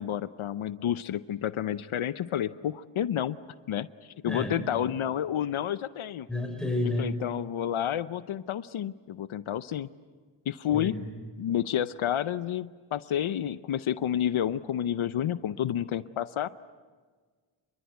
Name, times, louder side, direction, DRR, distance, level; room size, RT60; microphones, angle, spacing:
voice 1, 0.0-3.4 3.7-6.3 7.0-9.9 10.5-11.1 11.4-16.5, left 10 dB, 80° left, 14 dB, 0.8 m, -30 dB
voice 2, 4.3-4.6 6.3-7.1 10.7-11.0, left 2 dB, ahead, 2 dB, 6.5 m, -30 dB
28.0 x 22.5 x 9.4 m, 1.5 s
wide cardioid pair, 125°, 48 cm